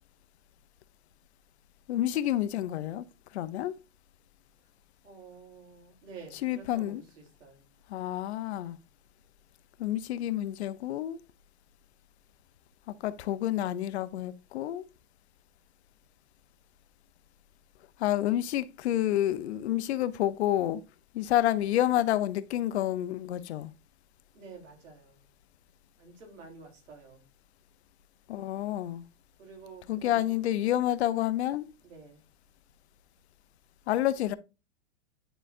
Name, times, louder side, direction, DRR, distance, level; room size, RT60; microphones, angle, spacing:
voice 1, 1.9-3.1 3.3-3.7 6.4-7.0 7.9-8.8 9.8-11.2 12.9-14.8 18.0-20.8 21.1-23.7 28.3-29.0 29.9-31.7 33.9-34.3, left 13 dB, 60° left, 0.7 m, -29 dB
voice 2, 5.0-7.7 24.3-25.3 26.0-27.2 29.4-30.4 31.8-32.2, right 4 dB, 90° right, 3.5 m, -50 dB
10.0 x 4.0 x 2.5 m
supercardioid pair, 160°, 37 cm